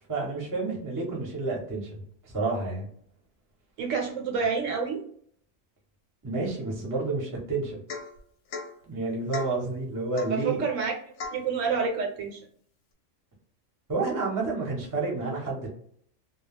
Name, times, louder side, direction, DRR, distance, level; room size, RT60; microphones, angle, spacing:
voice 1, 0.1-1.9 2.2-2.9 6.2-7.8 8.8-10.6 13.9-15.7, right 3 dB, 20° right, -2 dB, 0.6 m, -30 dB
voice 2, 3.8-5.0 10.3-12.4, right 5 dB, 75° right, 3 dB, 1.0 m, -28 dB
Domestic sounds home sounds / Chink clink / Drip, 7.9-8.2 8.5-8.7 9.3-9.6 10.2-10.4 11.2-11.5, left 4 dB, 70° left, 0.8 m, -37 dB
2.3 x 2.0 x 3.3 m, 0.62 s
omnidirectional pair, 1.4 m